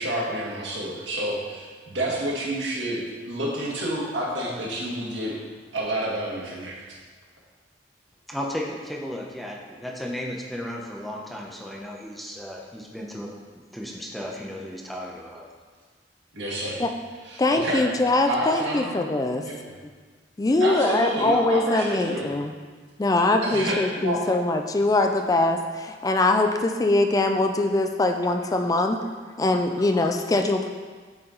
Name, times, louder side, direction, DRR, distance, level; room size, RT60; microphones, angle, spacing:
voice 1, 0.0-5.4 5.7-6.8 16.3-16.8 17.2-17.8 18.3-18.9 19.4-19.6 20.6-22.3 23.4-24.3, right 1 dB, 90° right, -5 dB, 1.8 m, -29 dB
voice 2, 8.3-13.3 13.7-15.5, equal, ahead, -3 dB, 0.7 m, -34 dB
voice 3, 17.4-19.4 20.4-22.5 23.0-29.0 29.4-30.7, left 2 dB, 20° left, 6 dB, 0.3 m, -22 dB
8.6 x 4.3 x 3.9 m, 1.5 s
head